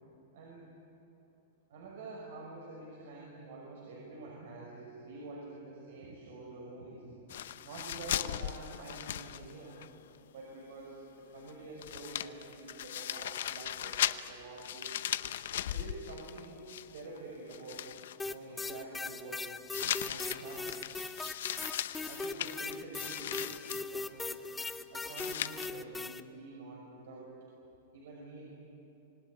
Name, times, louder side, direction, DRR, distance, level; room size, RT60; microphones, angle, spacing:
voice 1, 0.3-0.7 1.7-7.2 7.6-9.8 10.3-14.9 15.7-16.6 16.9-17.9 18.2-19.6 19.8-20.9 22.1-24.3 24.9-27.3 27.9-28.5, right 2 dB, 70° right, -2 dB, 5.8 m, -47 dB
sound 1, 7.3-9.9 10.1-10.2 11.5-11.6 11.8-17.2 17.5-18.2 19.7-23.8 25.1-25.7, left 11 dB, 75° left, 0.8 m, -38 dB
sound 2, 18.2-26.2, left 3 dB, 10° left, 0.6 m, -39 dB
26.0 x 18.5 x 9.8 m, 2.7 s
supercardioid pair, 155°, 0 cm